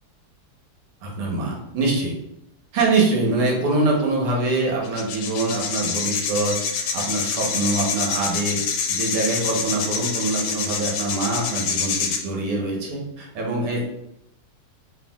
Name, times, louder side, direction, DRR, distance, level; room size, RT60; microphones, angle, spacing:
voice 1, 1.0-2.2 2.7-6.6 6.9-8.6 8.9-13.8, right 2 dB, 85° right, -1 dB, 1.8 m, -24 dB
sound 1, 4.0-4.1 4.8-12.2, left 6 dB, 75° left, 1.3 m, -26 dB
5.8 x 2.6 x 2.2 m, 0.80 s
omnidirectional pair, 2.4 m